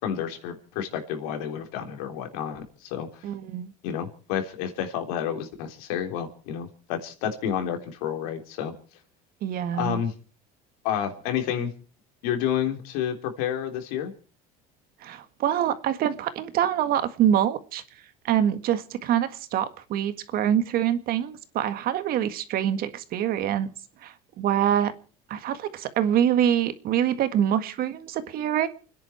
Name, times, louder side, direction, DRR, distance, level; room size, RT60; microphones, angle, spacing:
voice 1, 0.0-3.2 3.8-8.7 9.7-10.1 10.8-11.7 12.2-14.1, left 9 dB, 85° left, 5 dB, 3.7 m, -30 dB
voice 2, 3.2-3.7 9.4-10.0 15.0-17.8 18.2-23.7 24.0-24.9 25.3-28.7, right 10 dB, 55° right, 11 dB, 1.7 m, -25 dB
29.5 x 10.5 x 4.5 m, 0.40 s
supercardioid pair, 120°, 19 cm